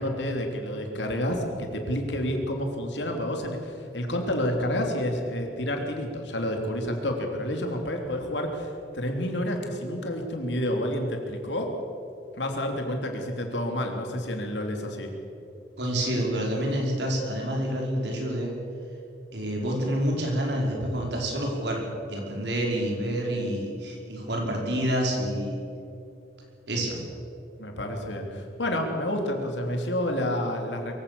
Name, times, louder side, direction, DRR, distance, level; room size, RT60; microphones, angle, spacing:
voice 1, 0.0-11.8 12.3-15.1 27.6-30.9, left 1 dB, 90° left, 3 dB, 3.3 m, -29 dB
voice 2, 15.8-18.5 19.3-21.8 22.1-25.6 26.7-27.0, equal, 80° right, 0 dB, 5.1 m, -28 dB
23.0 x 16.0 x 7.0 m, 2.7 s
head